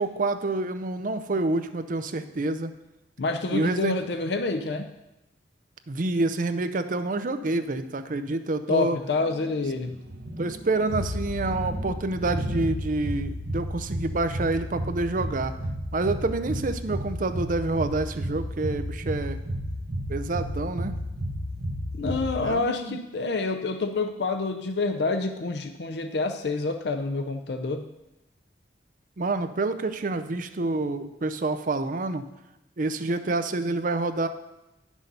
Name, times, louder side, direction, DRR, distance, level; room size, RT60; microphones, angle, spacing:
voice 1, 0.0-2.7 3.5-4.0 5.9-9.0 10.4-15.6 15.9-19.4 20.1-21.0 22.4-23.0 29.2-32.2 32.8-34.3, right 2 dB, 50° right, 10 dB, 0.6 m, -28 dB
voice 2, 3.2-4.9 8.7-10.0 21.9-27.9, left 3 dB, 70° left, 7 dB, 0.6 m, -27 dB
sound 1, 9.9-22.5, equal, 75° right, 1.0 m, -32 dB
10.0 x 6.3 x 5.4 m, 0.94 s
head